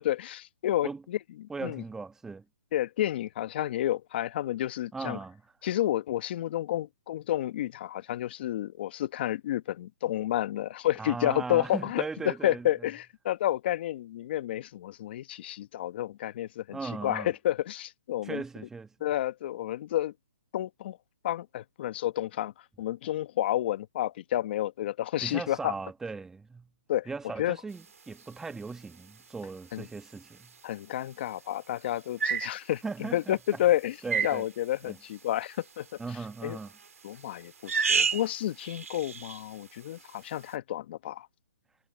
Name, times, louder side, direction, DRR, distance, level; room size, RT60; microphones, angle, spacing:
voice 1, 0.0-1.8 2.7-5.2 5.6-18.4 19.0-20.1 20.5-21.0 21.2-22.5 22.8-25.7 26.9-27.1 27.4-27.6 29.7-29.9 30.6-32.8 33.1-34.0 34.2-35.9 36.4-36.6 37.0-41.3, left 13 dB, 45° left, 1.1 m, -30 dB
voice 2, 1.5-2.4 4.9-5.4 11.0-12.7 16.7-17.3 18.2-18.9 25.2-26.7 27.1-30.5 32.8-33.6 34.0-34.5 34.8-35.0 36.0-36.7, right 4 dB, 5° right, 1.1 m, -38 dB
sound 1, 30.0-30.1 32.2-32.5 34.1-34.4 36.5-36.9 37.6-38.3 38.6-39.4, right 6 dB, 85° right, 3.5 m, -29 dB
hypercardioid pair, 150°, 8 cm